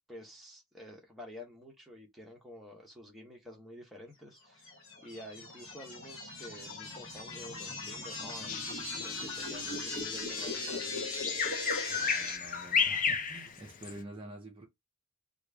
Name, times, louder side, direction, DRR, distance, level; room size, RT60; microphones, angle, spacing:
voice 1, 0.1-4.7 5.0-11.0, left 1 dB, ahead, 0.9 m, -49 dB
sound 1, 4.6-12.4, left 3 dB, 60° left, 1.4 m, -39 dB
Bird vocalization bird call bird song, 8.5-14.0, left 6 dB, 35° left, 0.4 m, -33 dB
voice 2, 11.9-14.7, right 1 dB, 25° right, 0.6 m, -47 dB
3.0 x 2.4 x 3.3 m
head